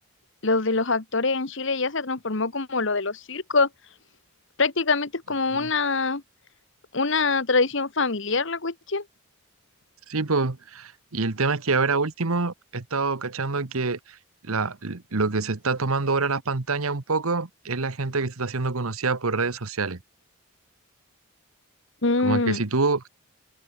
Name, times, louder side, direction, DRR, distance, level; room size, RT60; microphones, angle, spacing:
voice 1, 0.4-3.7 4.6-6.2 6.9-9.0 22.0-22.6, left 3 dB, 55° left, 1.3 m, -24 dB
voice 2, 10.1-14.2 14.4-20.0 22.2-23.1, right 3 dB, 80° right, 1.3 m, -26 dB
open air
head